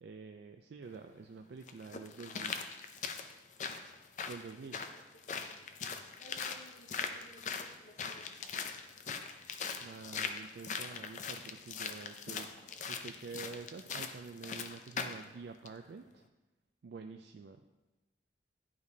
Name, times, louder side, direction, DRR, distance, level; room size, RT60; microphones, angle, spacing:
voice 1, 0.0-2.7 4.2-4.8 9.8-16.3 16.8-17.6, right 4 dB, 70° right, 5 dB, 0.4 m, -48 dB
sound 1, 0.8-0.9 1.7-15.2 15.6-15.7, left 6 dB, 45° left, 0.4 m, -41 dB
voice 2, 4.5-5.0 5.3-5.9 6.2-8.7, equal, 85° left, -2 dB, 0.8 m, -59 dB
11.0 x 5.1 x 2.7 m, 1.1 s
head